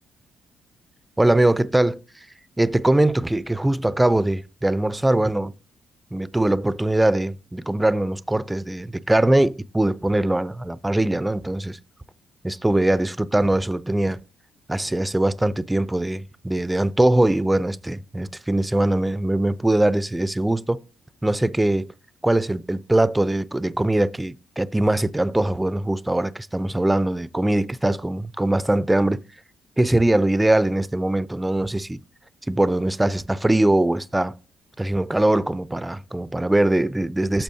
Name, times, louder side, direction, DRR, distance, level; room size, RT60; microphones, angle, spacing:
voice 1, 1.2-2.0 2.6-5.5 6.1-11.8 12.4-14.2 14.7-20.8 21.2-21.9 22.2-29.2 29.8-32.0 32.5-34.3 34.8-37.4, right 1 dB, 10° right, 0.4 m, -21 dB
10.0 x 7.0 x 2.6 m
cardioid pair, 90°, 0 cm